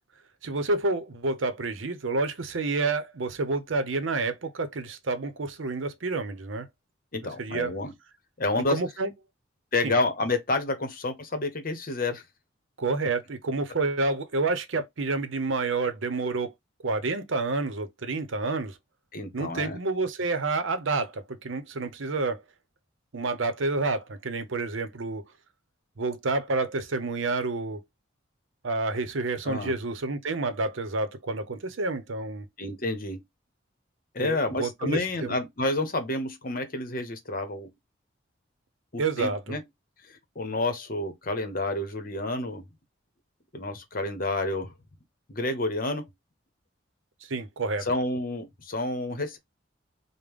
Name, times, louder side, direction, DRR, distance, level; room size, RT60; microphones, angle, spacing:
voice 1, 0.4-6.7 7.4-7.7 8.7-9.1 9.8-9.9 12.8-16.5 16.8-18.8 19.3-22.4 23.1-25.2 26.0-27.8 28.6-32.5 34.2-35.4 39.0-39.6 47.3-47.9, right 3 dB, 75° right, 0.7 m, -29 dB
voice 2, 7.1-7.9 8.4-8.8 9.7-12.2 19.1-19.8 29.4-29.7 32.6-33.2 34.1-37.7 38.9-39.6 40.1-42.6 43.5-44.7 45.3-46.1 47.8-49.4, left 2 dB, 45° left, 0.9 m, -29 dB
5.0 x 2.1 x 3.5 m
head